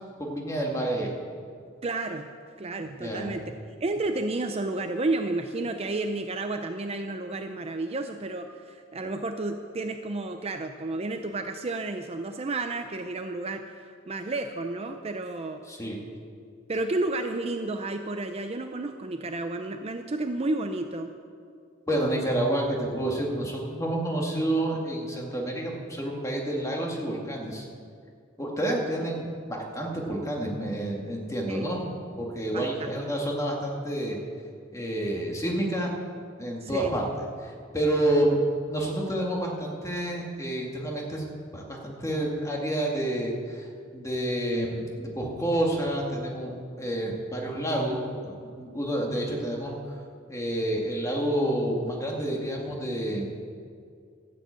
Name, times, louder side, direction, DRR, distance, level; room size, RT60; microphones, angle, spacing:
voice 1, 0.2-1.1 3.0-3.3 15.7-16.0 21.9-27.7 28.4-34.2 34.7-35.9 36.4-38.4 38.7-41.3 41.5-43.7 43.9-49.8 50.3-53.3, right 1 dB, 15° left, -1 dB, 2.1 m, -29 dB
voice 2, 1.8-2.3 2.6-3.6 3.8-15.6 16.7-21.1 31.5-31.7 32.5-32.7 36.6-36.9, right 2 dB, 30° right, 6 dB, 0.6 m, -31 dB
13.0 x 7.8 x 8.2 m, 2.3 s
head